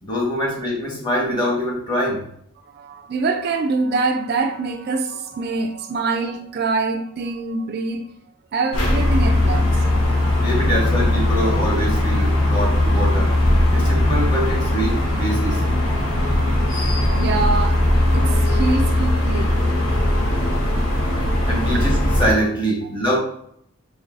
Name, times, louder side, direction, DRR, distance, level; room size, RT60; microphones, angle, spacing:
voice 1, 0.0-2.2 10.4-13.3 13.7-15.6 21.5-23.2, equal, 20° left, 1.1 m, -24 dB
voice 2, 2.7-8.1 8.5-10.2 17.1-17.8 18.1-20.0 20.4-21.4, right 3 dB, 50° right, 0.4 m, -25 dB
sound 1, 8.7-22.3, left 1 dB, 90° left, 1.0 m, -19 dB
5.2 x 3.1 x 2.5 m
head